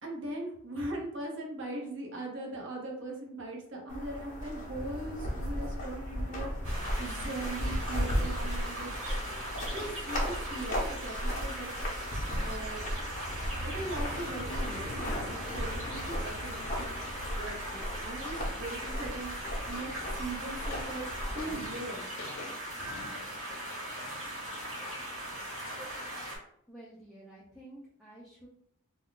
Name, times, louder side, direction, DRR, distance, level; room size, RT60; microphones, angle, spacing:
voice 1, 0.0-8.9 9.6-11.7 12.4-12.8 13.6-16.9 17.4-19.3 19.7-21.1 21.3-22.1, right 2 dB, 60° right, -1 dB, 0.8 m, -40 dB
sound 1, 3.9-21.5, equal, 35° left, 0.7 m, -36 dB
sound 2, 6.6-26.4, right 1 dB, 90° right, 1.2 m, -40 dB
sound 3, 14.7-26.3, left 2 dB, 75° left, 0.6 m, -49 dB
voice 2, 26.7-28.5, right 1 dB, ahead, -7 dB, 0.4 m, -51 dB
2.2 x 2.2 x 3.7 m, 0.69 s
head